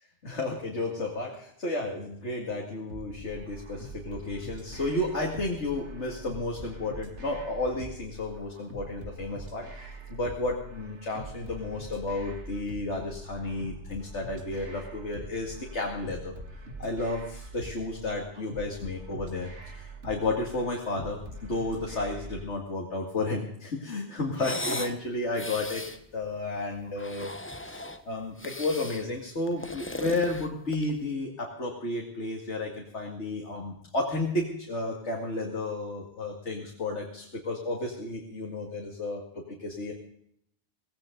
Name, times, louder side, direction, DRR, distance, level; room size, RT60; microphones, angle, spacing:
voice 1, 0.2-16.3 16.8-25.8 26.1-27.3 27.6-39.9, left 2 dB, 85° left, 0 dB, 2.6 m, -32 dB
sound 1, 2.9-22.5, right 1 dB, 85° right, 2.4 m, -43 dB
sound 2, 24.3-25.0 25.3-26.0 26.9-28.0 28.4-29.1 29.5-31.0, left 2 dB, 10° left, 0.9 m, -37 dB
18.0 x 17.0 x 3.9 m, 0.70 s
omnidirectional pair, 1.2 m